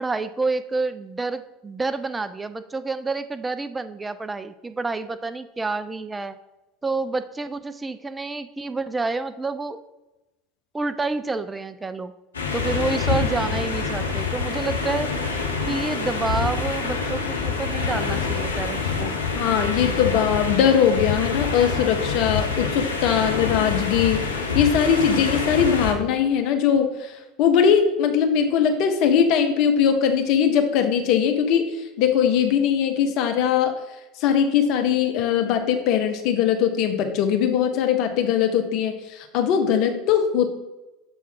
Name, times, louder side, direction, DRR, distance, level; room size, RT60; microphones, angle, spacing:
voice 1, 0.0-6.4 6.8-9.8 10.7-12.1 12.5-15.1 15.7-19.2, right 3 dB, 15° right, 11 dB, 0.3 m, -28 dB
sound 1, 12.3-25.9, left 4 dB, 85° left, 0.7 m, -26 dB
voice 2, 19.3-31.7 32.0-33.8 34.2-40.5, left 8 dB, 55° left, 6 dB, 0.8 m, -21 dB
7.1 x 3.5 x 4.5 m, 1.0 s
figure-of-eight pair, 75°, 0 cm